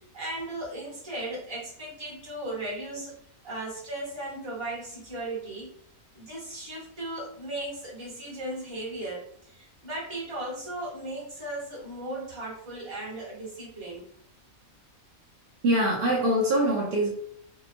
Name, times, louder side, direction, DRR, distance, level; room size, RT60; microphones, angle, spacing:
voice 1, 0.1-5.7 6.1-14.0, right 1 dB, 20° right, -5 dB, 1.0 m, -36 dB
voice 2, 15.6-17.1, right 1 dB, 55° right, -5 dB, 0.7 m, -23 dB
2.9 x 2.0 x 2.5 m, 0.65 s
omnidirectional pair, 1.5 m